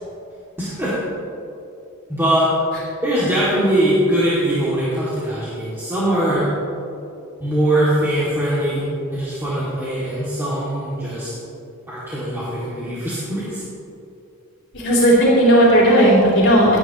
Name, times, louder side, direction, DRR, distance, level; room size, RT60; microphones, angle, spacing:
voice 1, 0.6-0.9 2.1-2.5 3.0-6.5 7.4-8.9 9.1-11.3 11.9-13.6, right 1 dB, 10° right, -11 dB, 2.4 m, -21 dB
voice 2, 14.7-16.8, right 1 dB, 50° left, -10 dB, 3.0 m, -14 dB
18.0 x 9.4 x 3.0 m, 2.7 s
head